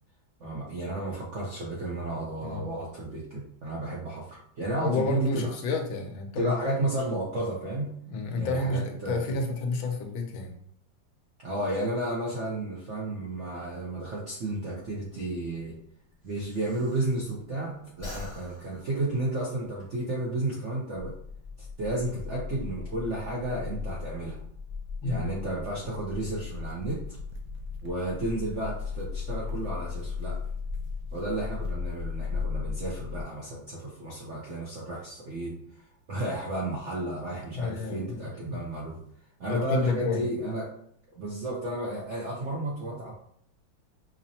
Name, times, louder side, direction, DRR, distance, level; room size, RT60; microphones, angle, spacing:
voice 1, 0.4-5.5 6.4-7.9 8.4-9.4 11.4-15.8 16.2-21.1 21.6-24.4 25.0-27.2 27.8-30.4 31.1-35.6 36.1-39.0 39.4-40.7 41.1-43.1, right 1 dB, 60° right, -5 dB, 0.7 m, -32 dB
voice 2, 4.8-6.5 8.1-10.5 25.0-25.3 37.5-38.6 39.5-40.2, left 3 dB, 80° left, 2 dB, 1.4 m, -30 dB
Breathing, 15.0-17.6 17.9-19.9, left 3 dB, 35° left, 1.0 m, -46 dB
sound 1, 21.0-33.2, left 5 dB, 5° right, 0.7 m, -36 dB
sound 2, 26.0-33.0, right 3 dB, 80° right, 1.4 m, -48 dB
5.4 x 2.1 x 2.7 m, 0.67 s
omnidirectional pair, 2.1 m